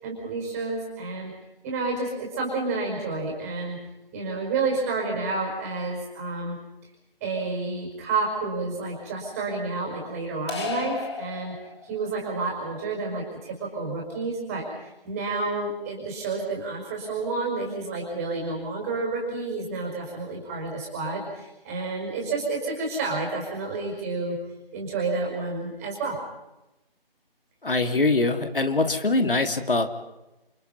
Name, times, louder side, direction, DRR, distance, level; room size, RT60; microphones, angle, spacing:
voice 1, 0.0-1.3 1.6-3.8 4.1-6.6 7.2-11.6 11.8-24.4 24.7-26.2, right 3 dB, 15° right, -1 dB, 5.3 m, -30 dB
sound 1, 10.5-12.2, left 4 dB, 30° left, 2.9 m, -33 dB
voice 2, 27.6-29.9, left 2 dB, 65° left, 7 dB, 2.7 m, -23 dB
28.5 x 28.5 x 5.6 m, 0.96 s
figure-of-eight pair, 160°, 30 cm